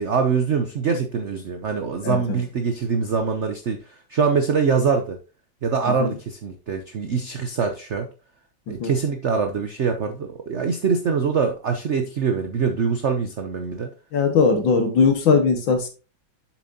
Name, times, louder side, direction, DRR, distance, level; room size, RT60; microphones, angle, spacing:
voice 1, 0.0-5.2 5.6-8.1 8.7-13.9, right 5 dB, 70° right, 5 dB, 0.6 m, -24 dB
voice 2, 2.0-2.4 6.0-6.1 8.8-8.9 14.1-15.9, left 5 dB, 70° left, 6 dB, 2.1 m, -19 dB
7.4 x 7.2 x 2.7 m, 0.33 s
omnidirectional pair, 2.2 m